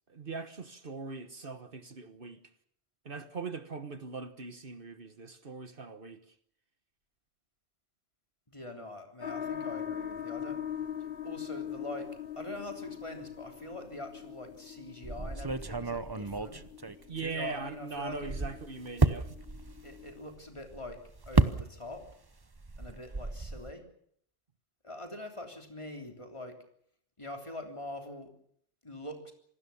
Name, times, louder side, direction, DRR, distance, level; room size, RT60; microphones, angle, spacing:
voice 1, 0.1-2.4 3.0-6.2 17.1-19.4, right 4 dB, 55° right, 1.5 m, -40 dB
voice 2, 8.5-10.6 11.2-12.1 12.3-16.6 17.3-18.3 19.8-21.0 21.2-22.0 22.8-23.9 24.8-26.6 27.2-28.3 28.8-29.3, left 1 dB, 30° left, 3.5 m, -43 dB
sound 1, 9.2-20.3, left 9 dB, 60° left, 1.6 m, -42 dB
sound 2, 15.0-17.7 18.1-22.1 22.4-23.7, right 3 dB, 25° right, 0.9 m, -32 dB
27.0 x 19.0 x 7.1 m
omnidirectional pair, 1.1 m